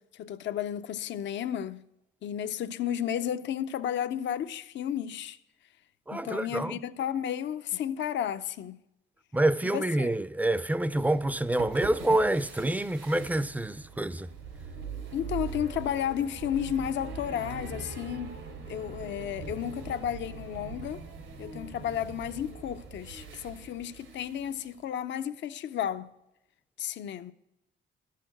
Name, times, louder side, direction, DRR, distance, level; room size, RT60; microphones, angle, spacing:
voice 1, 0.0-1.9 2.2-5.4 6.1-8.8 9.6-10.1 15.1-18.4 18.7-21.1 21.4-26.1 26.8-27.3, left 10 dB, 65° left, 0.6 m, -33 dB
voice 2, 6.1-6.8 9.3-14.3, right 1 dB, 10° right, 0.5 m, -27 dB
sound 1, 10.9-24.7, right 5 dB, 80° right, 3.3 m, -42 dB
13.0 x 6.7 x 7.6 m
cardioid pair, 90°, 20 cm